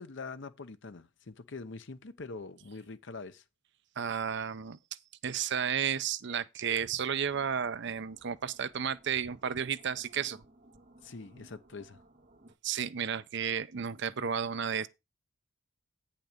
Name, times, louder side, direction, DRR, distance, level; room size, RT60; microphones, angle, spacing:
voice 1, 0.0-3.4 11.0-12.0, left 3 dB, 60° left, 0.8 m, -44 dB
voice 2, 4.0-4.8 5.2-10.4 12.6-14.9, right 7 dB, 60° right, 0.6 m, -32 dB
sound 1, 7.3-12.5, right 1 dB, 45° right, 1.8 m, -60 dB
9.2 x 5.8 x 5.1 m
head